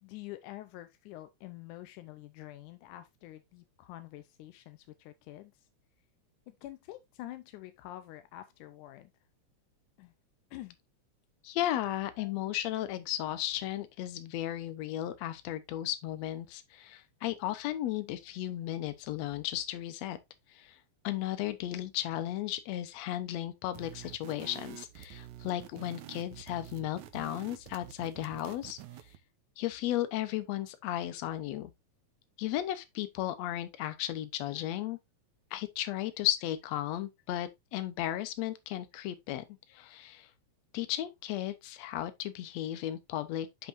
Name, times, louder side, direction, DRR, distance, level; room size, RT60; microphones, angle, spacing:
voice 1, 0.0-5.7 6.5-9.1 10.0-10.1 10.5-10.8, left 15 dB, 85° left, 2.2 m, -47 dB
voice 2, 11.4-20.2 20.5-20.8 21.0-28.8 29.6-31.7 32.4-35.0 35.5-39.5 39.7-40.3 40.7-43.7, left 13 dB, 70° left, 2.0 m, -35 dB
sound 1, 23.7-29.2, right 13 dB, 75° right, 2.1 m, -48 dB
10.5 x 5.5 x 2.6 m
omnidirectional pair, 3.5 m